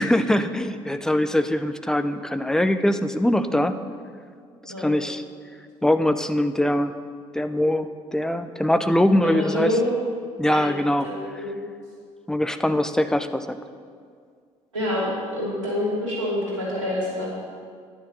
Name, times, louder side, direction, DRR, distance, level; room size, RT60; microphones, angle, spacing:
voice 1, 0.0-3.8 4.8-5.2 5.8-6.9 7.3-9.8 10.4-11.1 11.3-11.4 12.3-13.6, left 1 dB, 5° left, 10 dB, 0.5 m, -22 dB
voice 2, 9.2-9.9 10.5-10.7 11.0-11.6 14.7-17.3, left 1 dB, 80° right, -7 dB, 3.0 m, -27 dB
9.9 x 6.9 x 6.5 m, 2.1 s
figure-of-eight pair, 55°, 16 cm